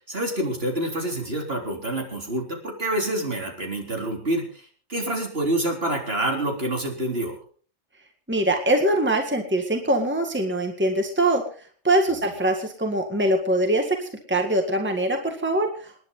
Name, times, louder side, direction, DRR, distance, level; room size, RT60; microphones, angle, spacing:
voice 1, 0.1-7.4, right 1 dB, 55° right, 1 dB, 4.1 m, -27 dB
voice 2, 8.3-11.4 11.8-16.1, right 1 dB, 10° right, 4 dB, 1.9 m, -23 dB
28.0 x 10.5 x 4.0 m, 0.43 s
omnidirectional pair, 1.2 m